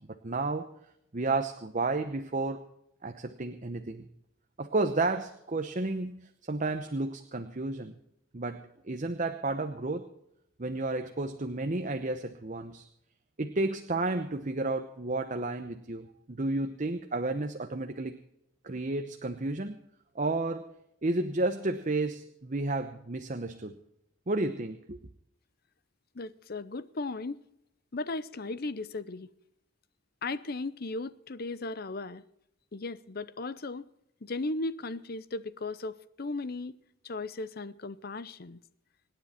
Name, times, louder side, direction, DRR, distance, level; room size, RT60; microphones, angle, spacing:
voice 1, 0.1-0.7 1.1-2.6 3.0-4.1 4.6-7.9 8.3-10.1 10.6-12.8 13.4-18.2 18.6-19.8 20.1-20.7 21.0-23.7 24.3-25.0, right 2 dB, 40° right, 0.9 m, -32 dB
voice 2, 26.2-27.4 27.9-29.3 30.2-32.2 32.7-33.8 34.2-36.7 37.0-38.6, left 3 dB, 50° left, 0.7 m, -36 dB
25.5 x 9.9 x 4.3 m
head